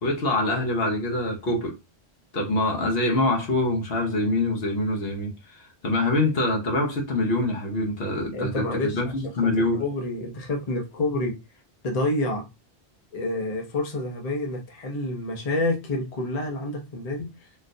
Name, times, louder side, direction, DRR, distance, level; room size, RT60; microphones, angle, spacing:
voice 1, 0.0-1.8 2.3-9.8, left 2 dB, 65° left, 1.0 m, -25 dB
voice 2, 8.3-11.4 11.8-12.4 13.1-17.3, left 2 dB, 40° left, 0.8 m, -28 dB
3.8 x 2.4 x 2.6 m
omnidirectional pair, 1.1 m